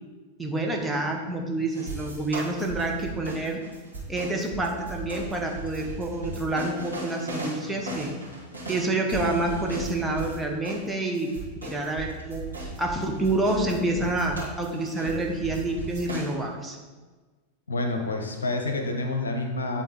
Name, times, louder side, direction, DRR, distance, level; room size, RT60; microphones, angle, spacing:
voice 1, 0.4-3.6 4.1-8.1 8.7-11.3 11.6-12.5 12.8-16.8, right 2 dB, 10° right, 0 dB, 0.9 m, -28 dB
sound 1, 1.7-10.4 10.6-16.3, right 2 dB, 80° right, 1.9 m, -37 dB
voice 2, 17.7-19.8, left 2 dB, 75° left, 4 dB, 0.8 m, -28 dB
9.2 x 3.7 x 3.9 m, 1.3 s
figure-of-eight pair, 90°, 0 cm